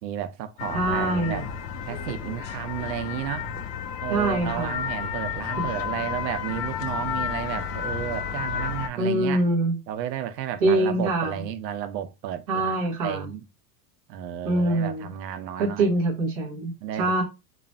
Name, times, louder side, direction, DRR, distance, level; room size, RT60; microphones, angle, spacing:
voice 1, 0.0-1.5 1.9-3.5 4.0-9.4 9.9-12.8 13.0-13.4 14.1-15.9 16.8-17.1, right 10 dB, 80° right, 0.6 m, -32 dB
sound 1, 0.6-8.9, left 7 dB, 75° left, 0.5 m, -31 dB
voice 2, 0.7-1.4 4.1-4.8 5.6-5.7 9.0-9.8 10.6-11.4 12.5-13.3 14.4-15.1 15.6-16.7 17.0-17.2, right 2 dB, 25° right, 0.4 m, -24 dB
3.0 x 2.1 x 2.4 m
supercardioid pair, 180°, 50 cm